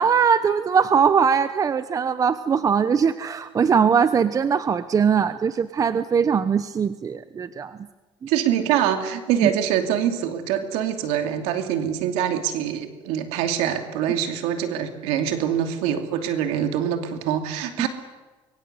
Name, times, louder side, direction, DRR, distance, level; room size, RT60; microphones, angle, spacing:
voice 1, 0.0-7.8 9.4-9.5 17.8-17.9, right 6 dB, 35° right, 12 dB, 1.0 m, -21 dB
voice 2, 8.3-17.9, right 9 dB, 85° right, 6 dB, 2.7 m, -24 dB
24.5 x 23.0 x 8.2 m, 1.3 s
cardioid pair, 105°, 11 cm